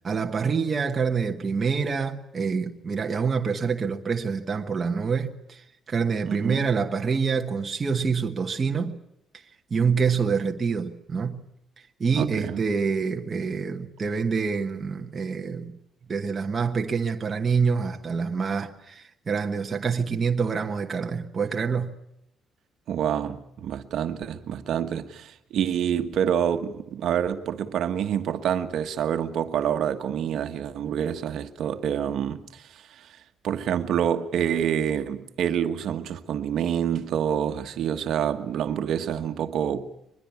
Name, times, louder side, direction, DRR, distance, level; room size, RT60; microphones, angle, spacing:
voice 1, 0.0-9.0 9.7-11.5 12.0-15.7 16.1-22.0, right 5 dB, 25° right, 1.2 m, -26 dB
voice 2, 6.2-6.7 12.2-12.6 22.9-33.1 33.4-39.9, right 9 dB, 55° right, 1.4 m, -27 dB
23.0 x 21.0 x 8.4 m
cardioid pair, 180°, 0 cm